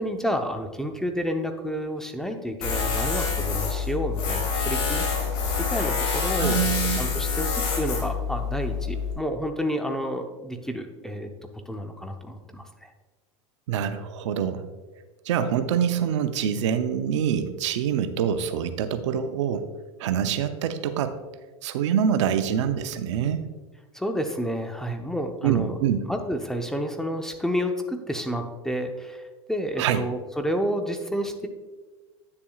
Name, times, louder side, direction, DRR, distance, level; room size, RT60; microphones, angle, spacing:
voice 1, 0.0-5.1 5.6-11.3 11.7-12.9 23.9-25.8 26.1-31.5, equal, 5° left, 5 dB, 0.8 m, -30 dB
Tools, 2.6-9.1, left 5 dB, 70° left, 2.4 m, -26 dB
voice 2, 6.4-7.0 13.7-14.6 15.3-19.7 20.0-21.2 21.6-23.4 25.4-26.0 29.8-30.0, right 8 dB, 80° right, 9 dB, 0.6 m, -25 dB
9.6 x 7.0 x 2.4 m, 1.3 s
hypercardioid pair, 100°, 15 cm